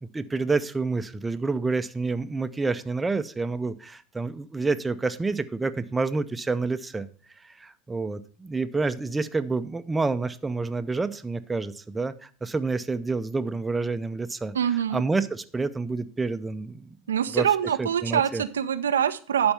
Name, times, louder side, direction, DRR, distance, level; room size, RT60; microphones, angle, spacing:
voice 1, 0.0-7.1 7.4-14.5 14.9-17.0 17.3-17.5 17.8-18.4, right 3 dB, 15° right, 10 dB, 0.6 m, -28 dB
voice 2, 14.5-15.0 17.1-19.5, right 9 dB, 80° right, 11 dB, 0.5 m, -24 dB
11.5 x 4.4 x 5.7 m, 0.43 s
hypercardioid pair, 80°, 0 cm